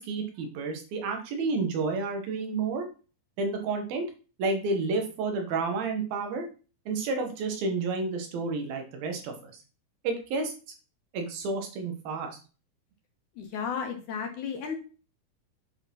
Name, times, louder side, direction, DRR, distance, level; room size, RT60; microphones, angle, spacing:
voice 1, 0.0-2.9 3.4-4.0 4.4-6.5 6.9-9.5 10.0-10.5 11.1-12.3, right 3 dB, 75° right, 4 dB, 3.4 m, -30 dB
voice 2, 13.4-14.8, left 6 dB, 65° left, 4 dB, 2.3 m, -33 dB
8.1 x 5.0 x 5.5 m, 0.36 s
omnidirectional pair, 4.3 m